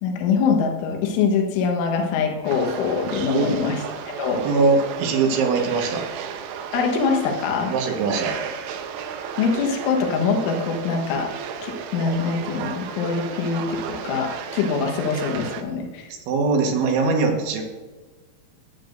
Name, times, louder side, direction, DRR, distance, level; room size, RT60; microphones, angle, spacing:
voice 1, 0.0-4.5 6.7-7.7 9.4-11.3 11.6-16.1, left 5 dB, 75° left, 2 dB, 3.7 m, -24 dB
sound 1, 2.5-15.6, right 7 dB, 85° right, 3.4 m, -33 dB
voice 2, 4.4-6.0 7.7-8.4 16.1-17.6, right 4 dB, 70° right, 2 dB, 3.6 m, -21 dB
20.5 x 8.5 x 2.6 m, 1.3 s
omnidirectional pair, 5.9 m